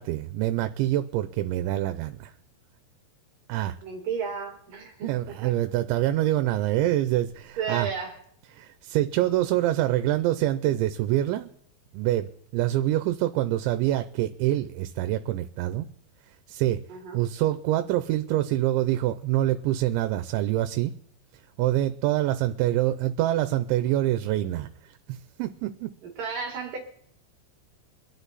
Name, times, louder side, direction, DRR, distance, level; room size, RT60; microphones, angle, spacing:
voice 1, 0.0-2.3 3.5-3.8 5.0-7.9 8.5-11.5 11.9-15.9 16.5-16.8 17.1-20.9 21.6-24.7 25.1-25.9, right 14 dB, 85° right, 10 dB, 3.0 m, -25 dB
voice 2, 3.8-5.5 7.6-8.2 10.7-10.8 16.9-17.2 26.0-26.8, right 6 dB, 55° right, 1 dB, 3.0 m, -33 dB
25.0 x 10.0 x 4.1 m, 0.70 s
omnidirectional pair, 5.2 m